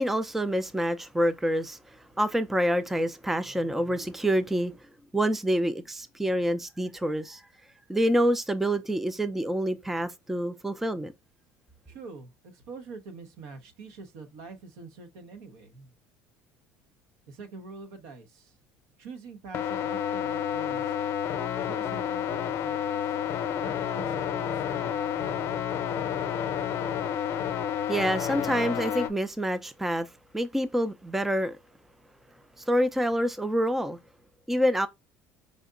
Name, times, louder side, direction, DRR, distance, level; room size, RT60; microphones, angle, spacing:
voice 1, 0.0-4.7 5.1-7.4 7.9-11.1 27.9-31.6 32.7-34.0 34.5-34.9, equal, 5° right, 0.4 m, -27 dB
voice 2, 11.9-15.9 17.3-18.6 19.0-20.9 21.6-23.2 23.6-26.1, right 4 dB, 80° right, 1.1 m, -45 dB
sound 1, 19.5-29.1, left 9 dB, 55° left, 0.7 m, -30 dB
5.0 x 2.8 x 2.5 m
supercardioid pair, 115°, 5 cm